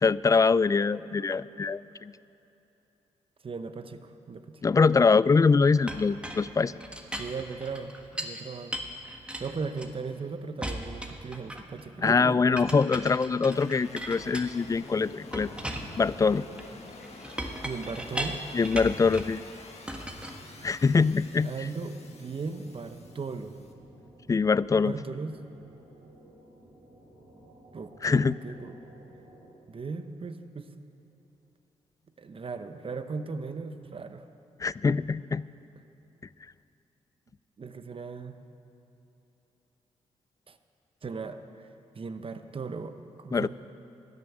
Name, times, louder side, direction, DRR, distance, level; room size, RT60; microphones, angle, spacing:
voice 1, 0.0-2.1 4.6-6.7 12.0-15.5 16.0-16.4 18.5-19.4 20.6-21.5 24.3-24.9 28.0-28.4 34.6-35.4 43.3-43.5, left 4 dB, 25° left, 19 dB, 0.3 m, -23 dB
voice 2, 3.4-4.6 7.2-8.9 9.4-12.6 17.6-18.4 21.4-23.6 24.8-25.4 27.7-28.7 29.7-30.7 32.2-34.2 37.6-38.4 40.5-40.6 41.0-41.7 41.9-43.5, right 4 dB, 45° right, 9 dB, 0.9 m, -37 dB
Chink clink, 5.9-8.4 8.7-10.2 10.6-11.8 12.6-14.9 15.3-19.4 19.9-21.0, equal, 10° right, 1.4 m, -38 dB
sound 1, 10.5-29.5, right 1 dB, 60° right, 3.8 m, -55 dB
sound 2, 13.5-23.7, left 3 dB, 55° left, 1.5 m, -48 dB
13.0 x 7.7 x 9.6 m, 3.0 s
supercardioid pair, 55°, 13 cm